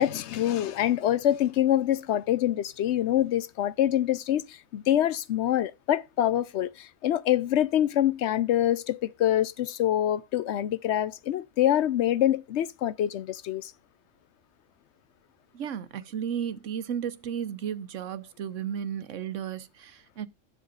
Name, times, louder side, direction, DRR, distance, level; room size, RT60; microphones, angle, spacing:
voice 1, 0.0-13.7, left 12 dB, 65° left, 0.9 m, -25 dB
voice 2, 15.5-20.3, right 8 dB, 70° right, 1.1 m, -34 dB
12.5 x 7.6 x 2.5 m
omnidirectional pair, 1.3 m